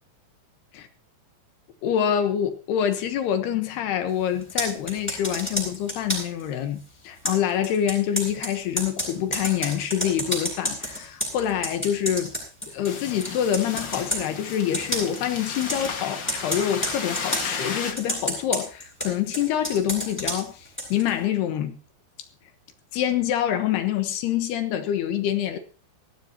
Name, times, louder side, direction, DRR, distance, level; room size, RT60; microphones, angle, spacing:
voice 1, 1.8-12.3 12.7-21.8 22.9-25.6, left 10 dB, 70° left, 3.0 m, -26 dB
Computer keyboard, 4.4-6.4 7.2-13.0 13.2-14.3 14.7-15.2 15.5-15.9 16.3-17.5 18.0-21.1, equal, ahead, 7.2 m, -30 dB
sound 1, 12.8-17.9, left 5 dB, 50° left, 1.3 m, -34 dB
19.5 x 15.5 x 2.9 m
omnidirectional pair, 5.2 m